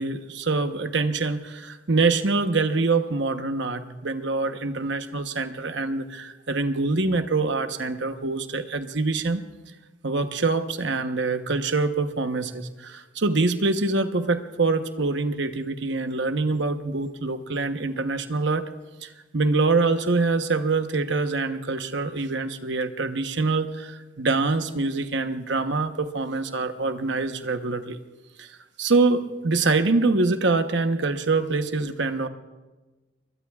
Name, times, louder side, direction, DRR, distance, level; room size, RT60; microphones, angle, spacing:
voice 1, 0.0-9.4 10.0-18.7 19.0-28.0 28.4-32.3, right 3 dB, 60° right, 8 dB, 1.0 m, -25 dB
24.5 x 22.5 x 2.4 m, 1.2 s
head